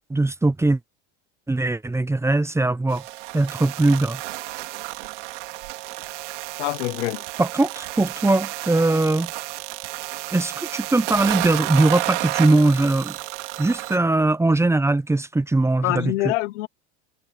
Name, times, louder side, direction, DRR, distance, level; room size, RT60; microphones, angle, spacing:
voice 1, 0.1-0.8 1.5-3.0 3.3-4.2 7.4-9.3 10.3-13.2 13.6-16.1, right 2 dB, 10° right, 1.0 m, -20 dB
sound 1, 2.9-14.0, right 19 dB, 85° right, 5.2 m, -31 dB
voice 2, 6.6-7.2 15.8-16.7, left 19 dB, 85° left, 1.1 m, -25 dB
supercardioid pair, 115°, 35 cm